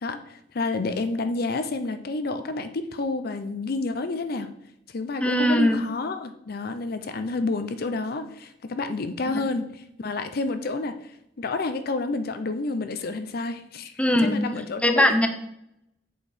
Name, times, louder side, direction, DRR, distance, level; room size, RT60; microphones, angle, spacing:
voice 1, 0.0-4.5 4.9-15.1, left 3 dB, 55° left, 9 dB, 0.6 m, -29 dB
voice 2, 5.2-5.8 14.0-14.4 14.8-15.3, left 1 dB, 5° left, 5 dB, 0.7 m, -20 dB
7.6 x 4.4 x 5.0 m, 0.78 s
head